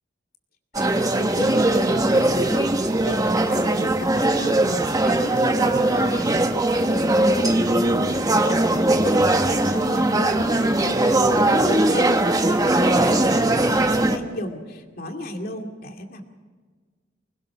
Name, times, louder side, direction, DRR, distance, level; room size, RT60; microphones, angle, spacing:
voice 1, 0.7-8.4 8.7-16.2, left 1 dB, 50° left, 4 dB, 2.4 m, -34 dB
sound 1, 0.7-14.2, right 1 dB, 20° right, 1.1 m, -20 dB
25.0 x 20.5 x 6.0 m, 1.4 s
head